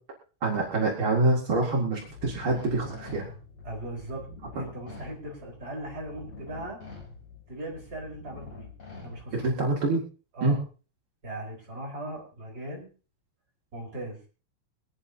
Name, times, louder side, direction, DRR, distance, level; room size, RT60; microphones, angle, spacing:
voice 1, 0.4-3.3 9.3-10.0 10.4-10.6, right 2 dB, 45° right, -3 dB, 1.7 m, -26 dB
sound 1, 2.0-9.7, left 4 dB, 30° left, 3.7 m, -46 dB
voice 2, 3.6-6.8 7.5-9.5 10.3-10.6 11.2-12.9 13.7-14.2, right 1 dB, 20° right, -2 dB, 4.0 m, -39 dB
25.0 x 9.9 x 2.7 m, 0.36 s
omnidirectional pair, 5.9 m